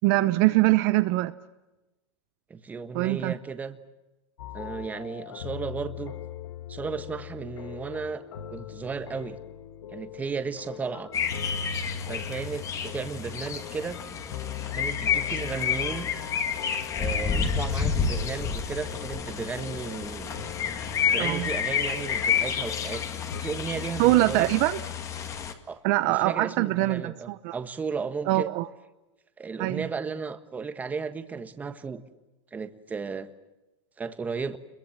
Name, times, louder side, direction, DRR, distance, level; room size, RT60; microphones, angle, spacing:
voice 1, 0.0-1.3 2.9-3.3 21.2-21.5 24.0-24.8 25.8-27.5 28.3-28.7 29.6-29.9, right 18 dB, 40° right, 12 dB, 0.8 m, -23 dB
voice 2, 2.5-3.8 4.5-6.1 6.7-8.2 8.5-9.4 9.9-11.1 12.1-14.0 14.7-16.1 17.0-20.3 21.1-23.1 23.4-24.5 25.7-25.8 26.1-28.5 29.4-32.0 32.5-33.3 34.0-34.6, right 5 dB, 10° right, 10 dB, 1.3 m, -34 dB
sound 1, 4.4-23.4, left 9 dB, 75° left, 2.5 m, -40 dB
sound 2, 11.1-25.5, left 7 dB, 20° left, 2.0 m, -30 dB
30.0 x 22.5 x 7.4 m, 1.0 s
supercardioid pair, 160°, 15 cm